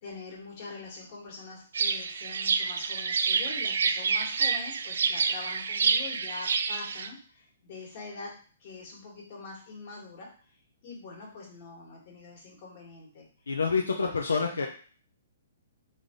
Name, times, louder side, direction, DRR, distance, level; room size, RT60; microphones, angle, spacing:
voice 1, 0.0-8.3 8.6-10.5 10.8-13.3 14.0-14.7, left 3 dB, 50° left, -2 dB, 1.5 m, -44 dB
sound 1, 1.7-7.1, right 5 dB, 75° right, 0.3 m, -28 dB
voice 2, 13.5-14.7, left 5 dB, 85° left, 1 dB, 0.4 m, -27 dB
3.3 x 2.7 x 3.7 m, 0.42 s
hypercardioid pair, 135°, 0 cm